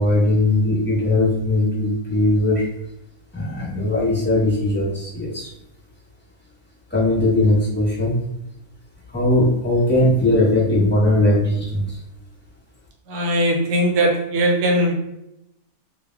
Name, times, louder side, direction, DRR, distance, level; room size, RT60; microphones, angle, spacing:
voice 1, 0.0-2.6 3.3-5.5 6.9-8.2 9.1-12.0, left 1 dB, 10° left, -7 dB, 0.9 m, -19 dB
voice 2, 13.1-15.0, equal, 80° right, 2 dB, 1.1 m, -19 dB
2.5 x 2.2 x 3.4 m, 0.83 s
omnidirectional pair, 1.6 m